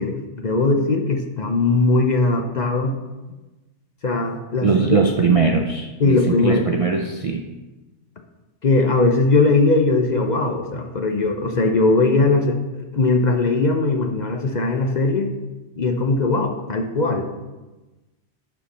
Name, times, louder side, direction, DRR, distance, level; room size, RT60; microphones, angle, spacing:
voice 1, 0.0-3.0 4.0-5.0 5.3-5.4 6.0-6.8 8.6-12.6 12.9-15.3 15.8-17.2, left 3 dB, 45° left, 4 dB, 0.7 m, -19 dB
voice 2, 4.6-7.5, right 5 dB, 45° right, 2 dB, 0.4 m, -20 dB
11.5 x 4.4 x 4.2 m, 1.1 s
omnidirectional pair, 1.2 m